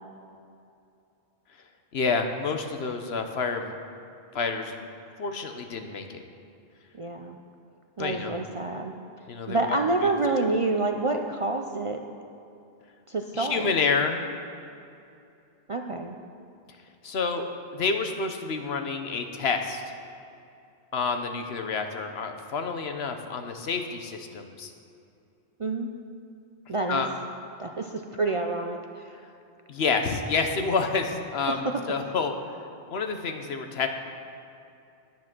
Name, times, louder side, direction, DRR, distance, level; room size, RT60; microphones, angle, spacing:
voice 1, 1.9-3.7 4.3-4.8 5.2-6.2 8.0-8.3 9.3-9.6 13.3-14.2 17.0-17.4 17.7-19.8 20.9-24.7 26.9-27.1 29.7-32.3 32.9-33.9, left 4 dB, 65° left, 6 dB, 1.1 m, -28 dB
voice 2, 6.9-7.4 8.0-8.9 9.5-12.0 13.1-13.7 15.7-16.2 25.6-25.9 26.7-27.0 27.6-29.3 31.5-31.7, right 3 dB, 40° right, 3 dB, 0.5 m, -28 dB
10.0 x 9.2 x 6.0 m, 2.6 s
omnidirectional pair, 1.1 m